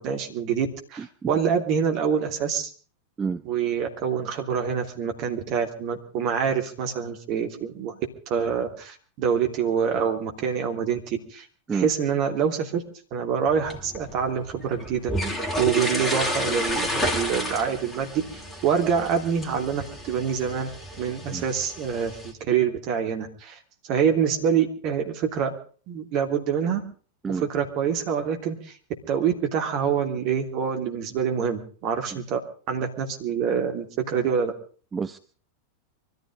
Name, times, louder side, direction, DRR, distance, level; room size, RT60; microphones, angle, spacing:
voice 1, 0.0-2.7 3.4-7.9 8.3-12.8 13.1-15.1 15.6-20.7 21.0-23.6 23.9-25.5 25.9-26.8 27.4-28.7 29.1-32.4 32.7-34.5, right 7 dB, 40° right, 3 dB, 3.1 m, -26 dB
voice 2, 1.0-1.3 3.2-3.5 11.7-11.9 21.3-21.4 27.2-27.5 32.1-32.2 34.9-35.2, right 5 dB, 15° right, 11 dB, 0.7 m, -29 dB
sound 1, 13.5-22.3, equal, 10° left, 3.9 m, -31 dB
24.5 x 14.5 x 3.8 m, 0.41 s
figure-of-eight pair, 90°, 0 cm